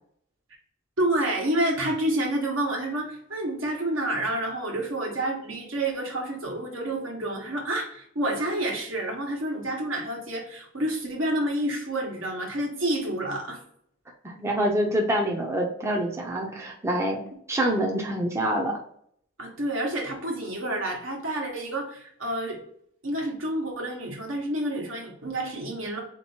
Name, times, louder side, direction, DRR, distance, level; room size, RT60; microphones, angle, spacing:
voice 1, 1.0-13.6 19.4-22.6 23.0-26.0, right 1 dB, 75° right, 0 dB, 1.3 m, -29 dB
voice 2, 14.2-17.2 17.5-18.8, right 1 dB, 15° right, 0 dB, 0.6 m, -26 dB
4.0 x 2.9 x 4.3 m, 0.67 s
head